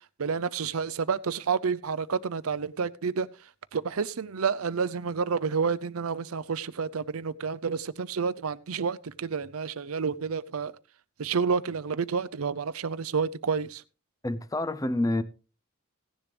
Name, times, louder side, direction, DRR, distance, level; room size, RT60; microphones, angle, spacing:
voice 1, 0.2-3.3 3.7-10.7 11.2-13.8, right 5 dB, 85° right, 0.6 m, -29 dB
voice 2, 14.2-15.2, left 1 dB, 15° left, 0.5 m, -27 dB
16.5 x 10.0 x 3.3 m
head